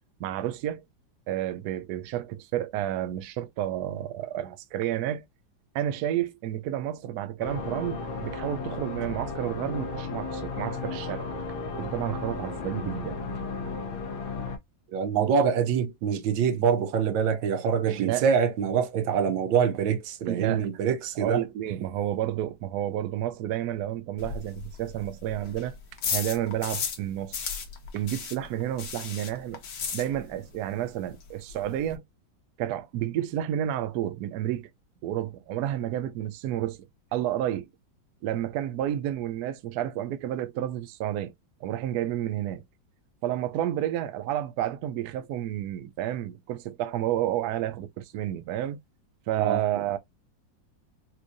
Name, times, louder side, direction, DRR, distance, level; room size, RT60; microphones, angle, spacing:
voice 1, 0.2-0.8 1.3-5.2 5.7-11.3 11.8-13.2 18.0-18.3 20.3-20.7 21.2-25.7 26.1-27.5 27.9-29.6 29.9-32.0 32.6-34.7 35.0-36.8 37.1-37.7 38.2-41.3 41.6-42.6 43.2-48.8 49.3-50.0, right 12 dB, 70° right, 0.9 m, -30 dB
sound 1, 7.4-14.6, left 4 dB, 85° left, 1.5 m, -34 dB
voice 2, 14.9-21.4 49.4-49.6, right 7 dB, 85° right, 1.4 m, -25 dB
sound 2, 24.2-27.1 27.3-30.5 30.8-30.9 31.2-31.3 31.5-32.0, left 6 dB, 60° left, 1.3 m, -34 dB
4.4 x 2.5 x 2.5 m
omnidirectional pair, 2.0 m